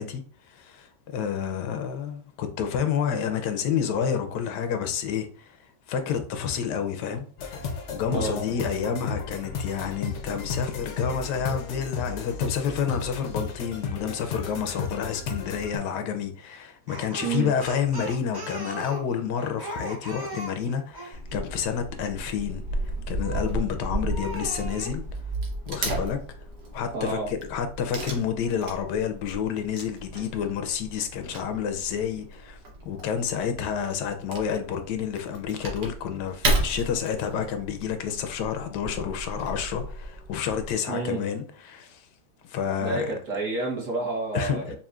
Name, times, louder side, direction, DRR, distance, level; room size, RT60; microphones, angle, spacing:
voice 1, 0.0-25.0 25.7-26.2 26.7-32.6 32.8-42.1 42.4-43.1 44.3-44.8, left 7 dB, 90° left, 1.2 m, -29 dB
sound 1, 7.4-15.8, left 5 dB, 65° left, 0.7 m, -34 dB
voice 2, 8.1-8.4 17.2-17.5 26.9-27.3 40.9-41.2 42.8-44.8, right 3 dB, 50° right, 1.5 m, -29 dB
Speech, 16.9-21.2 23.2-23.6 24.1-25.0, right 1 dB, 35° right, 0.3 m, -38 dB
Wood / Tearing, 21.1-40.7, right 1 dB, 85° right, 1.6 m, -34 dB
5.4 x 2.5 x 2.4 m
omnidirectional pair, 1.8 m